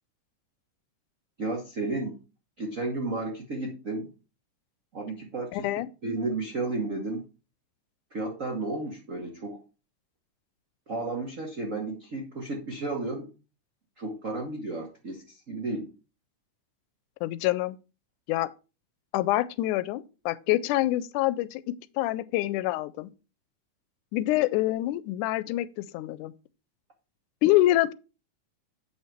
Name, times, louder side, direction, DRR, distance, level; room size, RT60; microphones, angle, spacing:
voice 1, 1.4-2.2 2.6-4.1 4.9-5.7 6.0-7.2 8.1-9.6 10.9-13.3 14.0-15.9, right 2 dB, 90° right, 0.7 m, -33 dB
voice 2, 5.5-5.9 17.2-17.8 18.3-18.5 19.1-23.1 24.1-26.3 27.4-27.9, left 16 dB, 90° left, 2.1 m, -26 dB
7.9 x 5.6 x 4.5 m
omnidirectional pair, 3.5 m